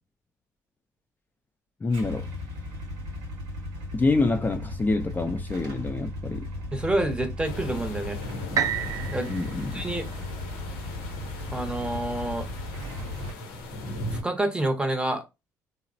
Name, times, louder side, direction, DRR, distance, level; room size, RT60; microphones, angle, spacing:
voice 1, 1.8-2.3 3.9-6.5 9.3-9.8, left 3 dB, 25° left, 0.4 m, -26 dB
Motorcycle / Engine starting / Idling, 1.9-13.3, left 1 dB, 85° right, 0.8 m, -36 dB
voice 2, 6.7-8.2 9.1-9.3 9.7-10.1 11.5-12.5 14.2-15.2, right 1 dB, 10° right, 0.7 m, -28 dB
sound 1, 7.4-14.2, left 1 dB, 90° left, 0.7 m, -38 dB
sound 2, 8.6-12.5 13.1-13.2, right 8 dB, 50° right, 0.4 m, -33 dB
3.0 x 2.0 x 2.5 m
supercardioid pair, 65°, 8 cm